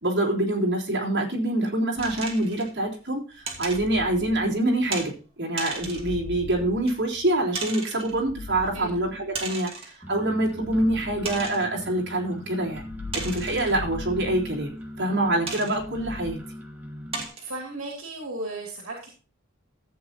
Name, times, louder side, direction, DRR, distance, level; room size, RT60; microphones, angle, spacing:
voice 1, 0.0-14.7 15.0-16.4, right 1 dB, 55° right, -3 dB, 3.5 m, -26 dB
sound 1, 2.0-2.7 3.4-5.1 5.7-7.5 8.0-9.6 10.4-12.1 12.6-15.1 15.7-16.3, left 4 dB, 85° left, 0.8 m, -41 dB
sound 2, 2.0-2.7 3.5-3.8 4.9-5.1 5.6-6.1 6.9-7.0 7.5-8.1 9.3-10.0 10.5-10.6 11.3-11.7 13.1-13.7 15.5-15.8 16.4-16.5 17.1-17.5, right 4 dB, 30° right, 2.4 m, -34 dB
sound 3, 10.0-17.2, equal, 10° right, 1.5 m, -40 dB
voice 2, 17.4-19.1, right 2 dB, 75° right, -1 dB, 2.6 m, -35 dB
14.0 x 8.4 x 2.9 m, 0.36 s
head